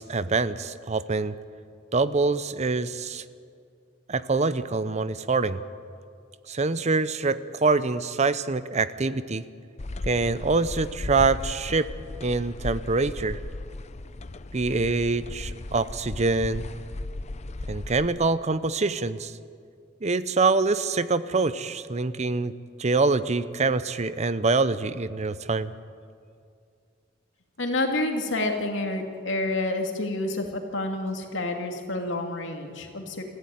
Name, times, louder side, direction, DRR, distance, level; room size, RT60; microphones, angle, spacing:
voice 1, 0.0-1.3 1.9-3.2 4.1-5.6 6.5-9.4 10.0-11.9 12.2-13.4 14.5-16.6 17.7-19.3 20.0-22.5 22.8-25.7, right 3 dB, 40° right, 14 dB, 0.7 m, -25 dB
sound 1, 9.8-18.1, left 2 dB, 35° left, 0.6 m, -36 dB
voice 2, 27.6-33.2, left 2 dB, 80° left, 3 dB, 2.7 m, -28 dB
27.5 x 15.0 x 9.3 m, 2.3 s
head